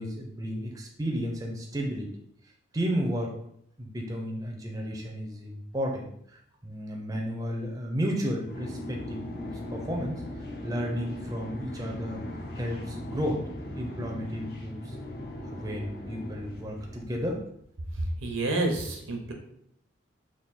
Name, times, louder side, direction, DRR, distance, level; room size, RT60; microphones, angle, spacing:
voice 1, 0.0-2.1 2.7-3.4 3.8-12.2 12.5-13.5 13.7-14.9 15.4-17.4, equal, 20° right, 0 dB, 0.5 m, -33 dB
sound 1, 8.4-17.4, left 1 dB, 50° left, 0.6 m, -39 dB
voice 2, 18.0-19.3, right 2 dB, 85° right, 2 dB, 0.8 m, -29 dB
3.6 x 2.5 x 4.1 m, 0.70 s
head